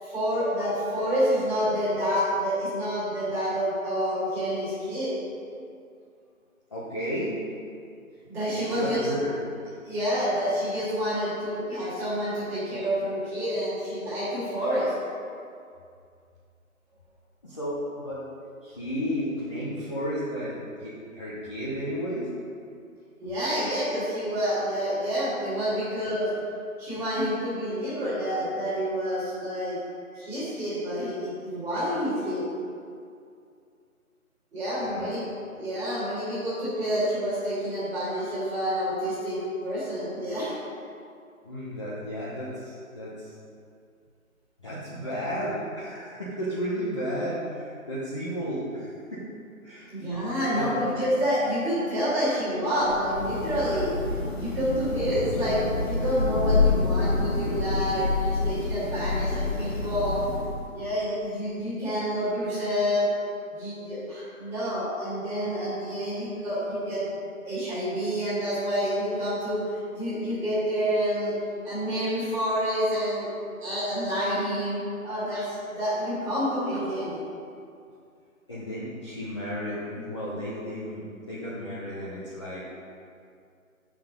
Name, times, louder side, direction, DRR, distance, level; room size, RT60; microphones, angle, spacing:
voice 1, 0.0-5.1 8.3-9.1 9.8-14.9 23.2-26.3 26.8-29.8 30.1-32.4 34.5-35.2 35.5-40.5 49.9-53.9 54.3-60.2 60.7-63.1 63.5-67.1 67.5-71.3 71.6-73.3 73.6-77.2, equal, 5° right, -13 dB, 2.1 m, -28 dB
voice 2, 6.7-7.4 8.5-9.4 13.3-13.5 17.4-18.2 18.6-22.3 30.1-30.2 34.7-35.2 41.4-43.4 44.6-49.2 49.6-49.9 50.5-51.0 78.5-82.6, equal, 20° left, -9 dB, 0.9 m, -33 dB
Thunder / Rain, 52.8-60.8, left 3 dB, 45° left, 1.0 m, -27 dB
8.9 x 6.0 x 5.2 m, 2.3 s
figure-of-eight pair, 160°, 43 cm